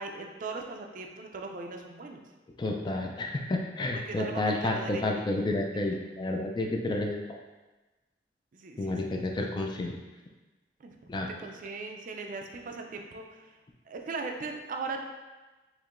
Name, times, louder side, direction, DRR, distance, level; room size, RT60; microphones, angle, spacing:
voice 1, 0.0-2.2 3.9-5.2 8.5-9.1 9.5-9.6 10.8-10.9 11.3-13.6 13.9-15.0, right 3 dB, 50° right, 3 dB, 0.4 m, -39 dB
voice 2, 2.6-7.2 8.8-10.0 11.1-11.3, left 2 dB, 25° left, 1 dB, 0.3 m, -30 dB
4.4 x 3.0 x 2.5 m, 1.2 s
head